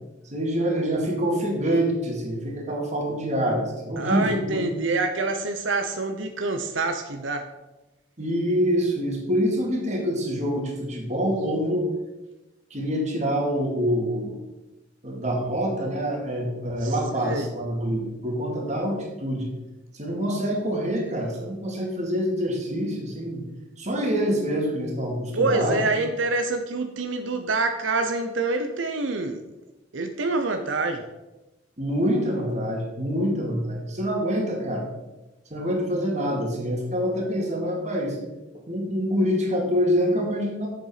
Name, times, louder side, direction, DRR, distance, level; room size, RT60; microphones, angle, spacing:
voice 1, 0.2-4.7 8.2-11.9 12.7-14.4 15.0-19.5 19.9-23.4 23.8-25.8 31.8-34.9 35.5-38.2 38.7-40.7, equal, 40° right, 0 dB, 2.2 m, -26 dB
voice 2, 4.0-7.4 16.8-17.5 25.3-29.4 29.9-31.1, right 3 dB, 90° right, 6 dB, 0.8 m, -26 dB
7.6 x 6.9 x 5.7 m, 1.0 s
head